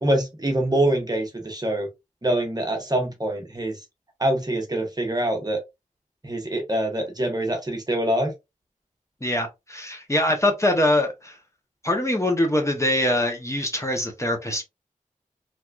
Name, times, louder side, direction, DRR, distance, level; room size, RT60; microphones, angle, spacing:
voice 1, 0.0-1.9 2.2-3.8 4.2-5.6 6.2-8.3, right 1 dB, 30° right, 1.2 m, -24 dB
voice 2, 9.2-11.4 11.8-14.6, left 1 dB, 20° left, 1.0 m, -23 dB
3.3 x 2.9 x 2.4 m
wide cardioid pair, 55°, 14 cm